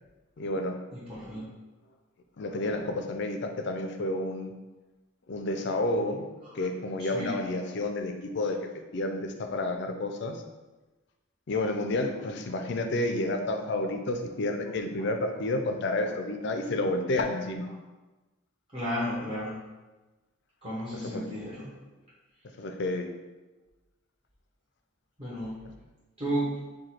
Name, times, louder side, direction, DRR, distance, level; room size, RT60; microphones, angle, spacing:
voice 1, 0.4-0.8 2.4-4.5 5.3-6.2 6.5-8.6 8.9-10.4 11.5-17.7 21.1-21.2 22.6-23.1, left 2 dB, 50° left, 5 dB, 0.4 m, -30 dB
voice 2, 0.9-1.5 6.4-6.6 7.0-7.4 12.5-12.6 15.0-15.1 18.7-19.6 20.6-21.7 25.2-25.6 26.2-26.6, equal, 30° right, -10 dB, 0.9 m, -33 dB
4.8 x 2.3 x 4.3 m, 1.2 s
head